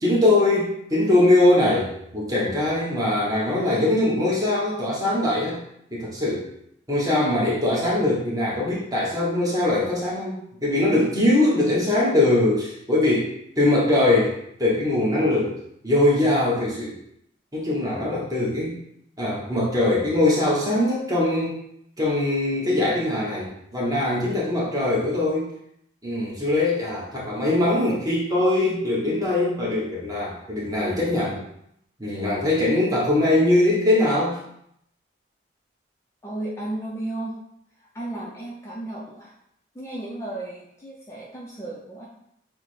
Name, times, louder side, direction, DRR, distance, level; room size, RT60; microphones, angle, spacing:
voice 1, 0.0-5.6 5.9-6.5 6.9-13.3 13.6-15.6 15.8-17.0 17.5-18.8 19.2-21.6 22.0-25.5 26.0-31.4 32.0-34.4, left 1 dB, 20° right, -5 dB, 1.0 m, -22 dB
voice 2, 36.2-37.4 37.9-39.3 39.7-42.1, right 1 dB, 15° left, -5 dB, 0.5 m, -34 dB
6.3 x 2.1 x 3.2 m, 0.74 s
head